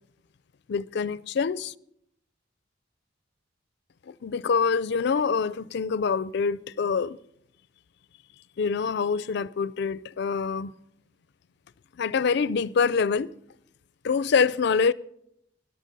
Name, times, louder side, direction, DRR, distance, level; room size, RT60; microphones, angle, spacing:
voice 1, 0.7-1.7 4.1-7.2 8.6-10.7 12.0-13.3 14.0-14.9, left 5 dB, 60° left, 0.4 m, -25 dB
14.0 x 11.5 x 5.4 m
head